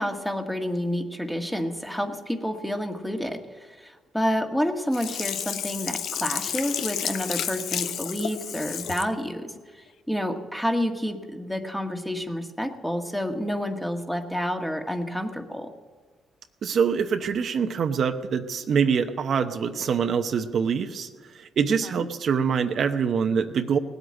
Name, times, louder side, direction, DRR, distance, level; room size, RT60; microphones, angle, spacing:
voice 1, 0.0-15.7 21.8-22.1, equal, 5° left, 4 dB, 1.5 m, -29 dB
Sink (filling or washing), 4.9-9.1 9.6-9.7, left 9 dB, 75° left, 0.7 m, -31 dB
voice 2, 16.6-21.1 21.3-23.8, right 6 dB, 60° right, 7 dB, 0.8 m, -24 dB
18.0 x 8.1 x 9.7 m, 1.4 s
cardioid pair, 90°, 0 cm